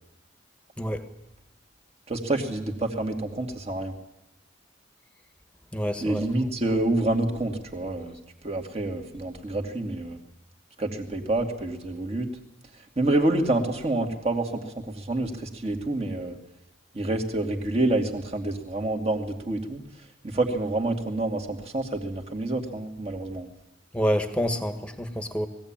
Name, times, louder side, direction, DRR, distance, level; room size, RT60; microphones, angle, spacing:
voice 1, 2.1-3.9 6.0-8.1 8.4-10.2 10.8-12.3 13.0-16.4 16.9-19.8 20.2-23.5, right 2 dB, 30° right, 3 dB, 2.4 m, -27 dB
voice 2, 5.7-6.2 23.9-25.5, equal, 5° left, 7 dB, 1.6 m, -27 dB
21.5 x 16.0 x 8.9 m, 0.90 s
head